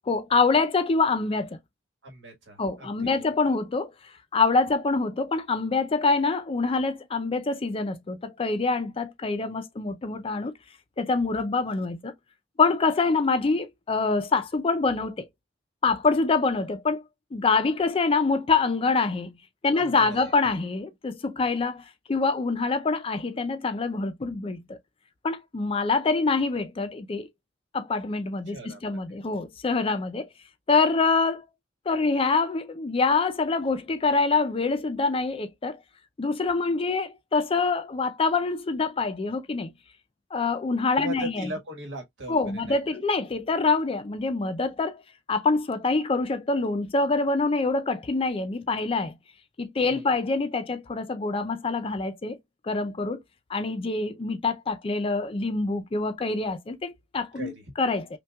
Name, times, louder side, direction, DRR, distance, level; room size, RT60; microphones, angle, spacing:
voice 1, 0.1-1.6 2.6-3.9 4.3-10.5 11.0-12.1 12.6-15.3 15.8-17.0 17.3-19.3 19.6-24.8 25.2-27.3 27.7-30.3 30.7-31.4 31.9-35.8 36.2-39.7 40.3-41.5 42.3-45.0 45.3-49.1 49.6-52.4 52.6-53.2 53.5-58.1, left 4 dB, 30° left, 0.4 m, -25 dB
voice 2, 2.0-3.2 19.7-20.3 28.5-29.0 41.0-43.0 49.9-50.0 57.3-57.5, right 2 dB, 70° right, 1.4 m, -39 dB
5.5 x 2.2 x 2.2 m
head